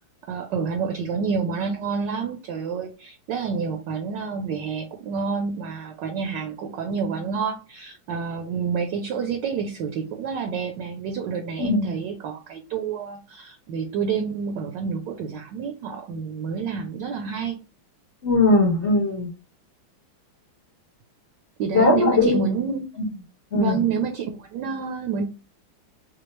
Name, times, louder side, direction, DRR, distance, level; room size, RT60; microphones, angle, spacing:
voice 1, 0.3-17.6 21.6-22.9 23.5-25.3, right 6 dB, 70° right, 1.1 m, -28 dB
voice 2, 11.6-11.9 18.2-19.3 21.7-22.4 23.5-23.7, left 3 dB, 35° left, 1.4 m, -19 dB
4.2 x 2.4 x 3.1 m
omnidirectional pair, 2.3 m